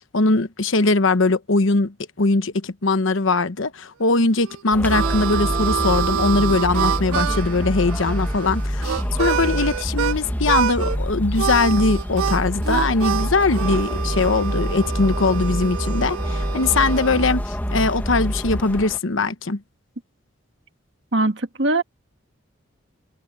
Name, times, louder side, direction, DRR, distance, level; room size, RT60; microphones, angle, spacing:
voice 1, 0.1-19.6, left 3 dB, 80° left, 1.1 m, -21 dB
Harmonica, 4.4-10.2 10.5-11.0 11.3-17.4, right 9 dB, 90° right, 0.3 m, -27 dB
sound 1, 4.7-19.0, equal, 10° left, 1.3 m, -26 dB
voice 2, 21.1-21.8, right 2 dB, 60° right, 1.7 m, -21 dB
head